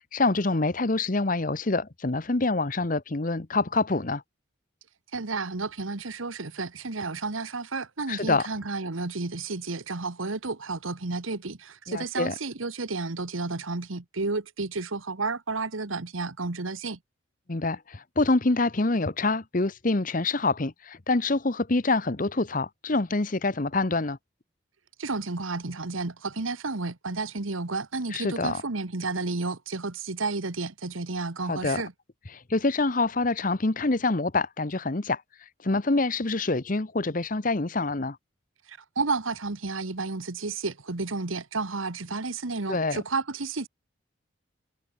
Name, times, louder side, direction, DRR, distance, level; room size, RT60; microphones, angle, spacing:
voice 1, 0.0-4.2 8.1-8.5 11.9-12.3 17.5-24.2 28.1-28.6 31.5-31.8 32.3-35.2 35.6-38.2 42.7-43.0, left 3 dB, 40° left, 1.0 m, -26 dB
voice 2, 5.1-17.0 25.0-31.9 38.7-43.7, right 3 dB, 85° right, 1.4 m, -31 dB
head